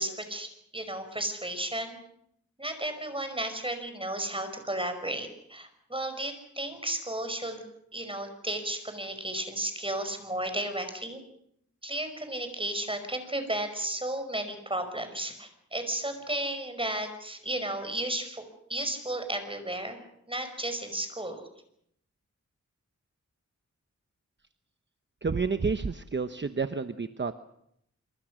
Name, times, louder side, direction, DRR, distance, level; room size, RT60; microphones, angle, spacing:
voice 1, 0.0-2.0 2.6-7.6 7.9-11.2 11.8-18.4 18.7-21.4, right 1 dB, 20° right, 8 dB, 5.4 m, -33 dB
voice 2, 25.2-27.4, right 4 dB, 40° right, 10 dB, 1.0 m, -30 dB
26.0 x 24.0 x 6.4 m, 0.74 s
wide cardioid pair, 80°, 29 cm